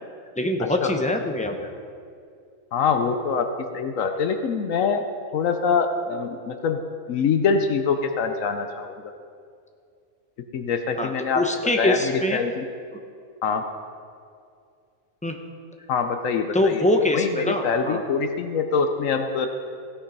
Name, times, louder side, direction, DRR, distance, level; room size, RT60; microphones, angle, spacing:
voice 1, 0.4-1.7 11.0-12.4 15.2-15.4 16.5-18.0, left 1 dB, 5° left, 3 dB, 0.7 m, -23 dB
voice 2, 2.7-3.5 3.7-5.0 5.3-6.8 7.1-8.9 10.5-11.4 11.8-12.6 13.4-13.6 15.9-16.9 17.1-19.5, left 5 dB, 75° left, 6 dB, 1.1 m, -24 dB
16.0 x 8.6 x 5.3 m, 2.3 s
omnidirectional pair, 1.4 m